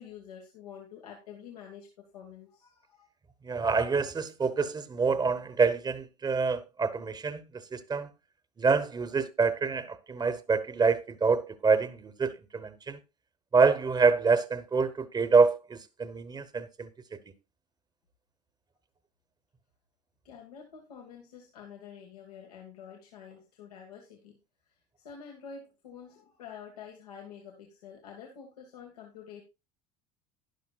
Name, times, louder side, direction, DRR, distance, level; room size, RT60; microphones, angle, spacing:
voice 1, 0.0-1.9 2.1-3.1 20.3-24.4 25.0-29.4, left 7 dB, 85° left, 1.8 m, -48 dB
voice 2, 3.4-8.1 8.6-13.0 13.5-17.2, right 4 dB, 20° right, 1.1 m, -26 dB
12.0 x 10.5 x 2.4 m
hypercardioid pair, 85°, 19 cm